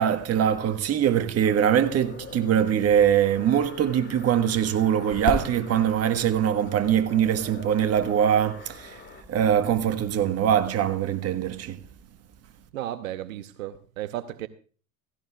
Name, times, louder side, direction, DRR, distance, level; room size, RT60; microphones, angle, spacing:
voice 1, 0.0-9.0 9.3-11.8, right 9 dB, 35° right, 1.4 m, -23 dB
sound 1, 1.4-9.2, left 5 dB, 25° left, 2.1 m, -45 dB
sound 2, 3.5-10.9, left 5 dB, 45° left, 4.4 m, -40 dB
voice 2, 12.7-14.5, right 13 dB, 75° right, 0.9 m, -34 dB
16.0 x 16.0 x 2.4 m
hypercardioid pair, 80°, 41 cm